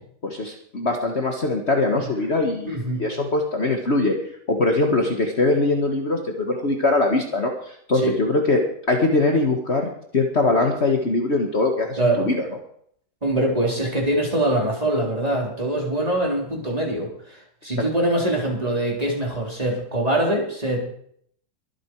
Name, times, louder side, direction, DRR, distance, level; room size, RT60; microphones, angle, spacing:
voice 1, 0.2-4.2 4.5-8.6 8.9-12.5, left 2 dB, 40° left, 3 dB, 1.7 m, -22 dB
voice 2, 2.7-3.0 8.0-8.1 12.0-12.3 13.2-20.8, right 1 dB, 20° right, -2 dB, 4.1 m, -23 dB
23.0 x 8.7 x 4.6 m, 0.65 s
omnidirectional pair, 1.8 m